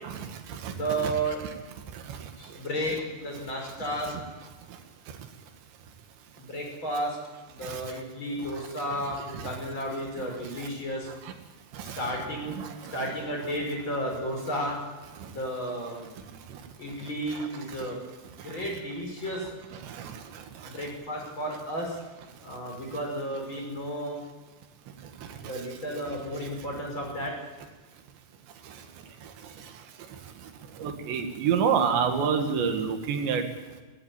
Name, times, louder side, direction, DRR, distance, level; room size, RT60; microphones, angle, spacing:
voice 1, 0.0-0.7 1.0-1.1 7.6-7.8 8.9-9.0 9.3-9.4 11.7-12.2 12.5-13.0 19.9-20.0 30.8-33.4, right 7 dB, 85° right, 5 dB, 4.1 m, -28 dB
voice 2, 0.7-1.4 2.3-4.2 6.4-7.2 7.5-11.1 12.0-12.6 12.9-14.8 15.3-16.2 16.8-18.0 18.4-19.5 20.6-22.0 22.4-24.2 25.4-27.3 29.4-29.5, right 1 dB, 25° left, 0 dB, 6.3 m, -33 dB
18.0 x 17.0 x 9.0 m, 1.3 s
omnidirectional pair, 5.0 m